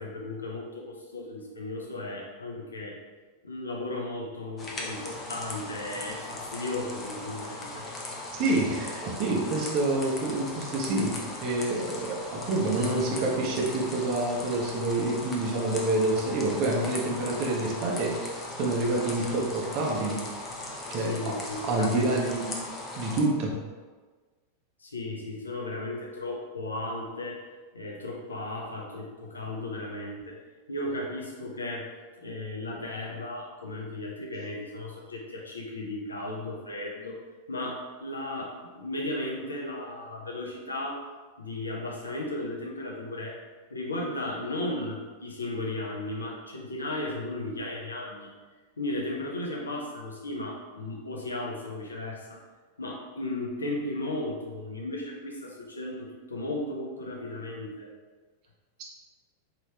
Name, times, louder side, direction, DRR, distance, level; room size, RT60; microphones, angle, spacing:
voice 1, 0.0-3.0 3.4-7.9 21.0-22.3 24.8-27.4 27.7-30.4 30.7-31.9 32.2-37.2 37.5-41.0 41.4-43.4 43.7-48.3 48.8-52.4 52.8-57.9, left 2 dB, 75° left, -1 dB, 0.7 m, -35 dB
sound 1, 4.6-23.2, left 2 dB, 20° left, 0.7 m, -38 dB
voice 2, 8.4-18.1 18.6-20.2 20.9-21.1 21.6-22.5 23.0-23.5, right 2 dB, 40° right, -2 dB, 0.9 m, -27 dB
4.2 x 3.0 x 3.3 m, 1.4 s
figure-of-eight pair, 90°, 0 cm